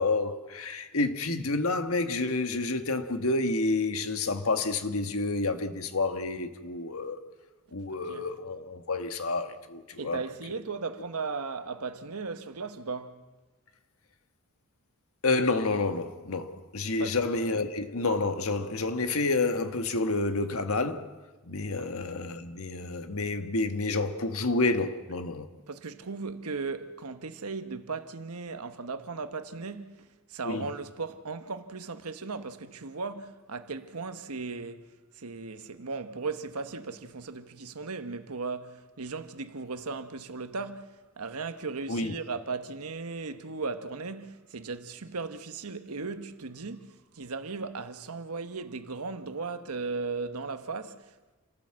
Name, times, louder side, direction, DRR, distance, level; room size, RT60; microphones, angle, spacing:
voice 1, 0.0-7.2 7.7-10.2 10.5-10.6 15.2-21.1 21.4-25.5 30.4-30.7 41.9-42.1, left 3 dB, 70° left, 1.5 m, -29 dB
voice 2, 7.9-8.3 10.0-13.2 17.0-17.2 21.8-21.9 25.7-34.9 35.1-51.4, right 4 dB, 80° right, 1.2 m, -37 dB
28.5 x 14.0 x 7.6 m
head